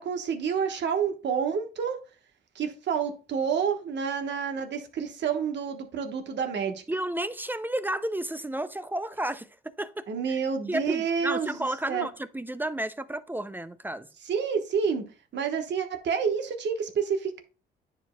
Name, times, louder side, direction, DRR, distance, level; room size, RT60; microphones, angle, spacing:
voice 1, 0.0-2.0 2.5-6.8 10.1-11.6 11.9-12.1 14.2-15.0 15.3-17.4, right 6 dB, 65° right, 1.2 m, -29 dB
voice 2, 6.9-9.5 9.8-10.4 10.7-14.1, right 1 dB, 10° right, 0.4 m, -32 dB
9.9 x 4.7 x 2.2 m
cardioid pair, 90°, 20 cm